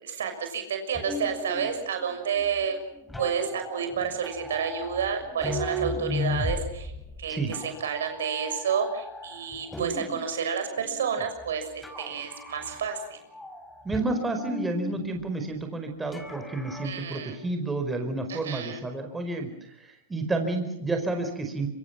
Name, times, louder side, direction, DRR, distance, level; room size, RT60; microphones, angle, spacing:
voice 1, 0.0-2.8 3.2-6.9 7.2-13.2 16.8-17.4 18.3-18.8, right 7 dB, 75° right, 6 dB, 6.3 m, -30 dB
sound 1, 0.9-10.3 10.7-11.5 11.8-13.0 13.3-15.0 16.1-16.9, left 1 dB, 5° left, 5.0 m, -36 dB
voice 2, 13.8-21.7, right 2 dB, 10° right, 5 dB, 5.0 m, -30 dB
25.5 x 25.0 x 6.0 m, 0.84 s
hypercardioid pair, 115°, 0 cm